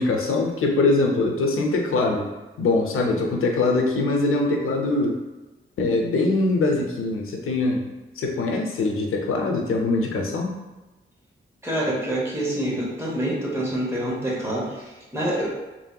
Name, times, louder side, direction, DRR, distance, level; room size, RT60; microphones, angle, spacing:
voice 1, 0.0-2.3 2.6-5.2 5.8-10.6, left 3 dB, 90° left, 1 dB, 0.5 m, -23 dB
voice 2, 11.6-15.5, right 1 dB, 10° right, -5 dB, 0.7 m, -26 dB
3.1 x 2.6 x 2.2 m, 1.1 s
wide cardioid pair, 160°, 21 cm